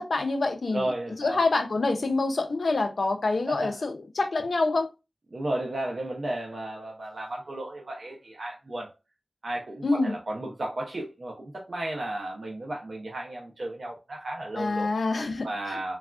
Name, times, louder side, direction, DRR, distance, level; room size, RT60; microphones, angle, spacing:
voice 1, 0.0-0.9 1.2-4.9 9.8-10.2 14.6-16.0, left 3 dB, 90° left, 0.4 m, -26 dB
voice 2, 0.7-1.4 3.5-3.7 5.3-8.9 9.4-14.9 15.4-16.0, right 1 dB, 70° right, 0.6 m, -34 dB
3.4 x 2.3 x 2.3 m
wide cardioid pair, 70°, 0 cm